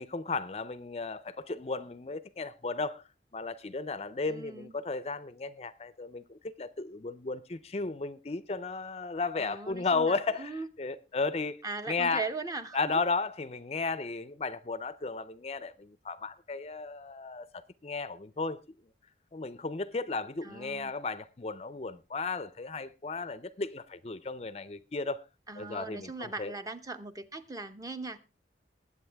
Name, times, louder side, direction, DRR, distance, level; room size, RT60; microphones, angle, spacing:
voice 1, 0.0-3.0 3.3-12.2 12.7-18.6 19.3-25.2 25.6-26.5, left 4 dB, 35° left, 0.5 m, -34 dB
voice 2, 4.3-4.7 9.4-10.7 11.6-13.0 20.4-21.0 25.5-28.2, right 3 dB, 20° right, 0.8 m, -39 dB
20.5 x 7.9 x 3.4 m
head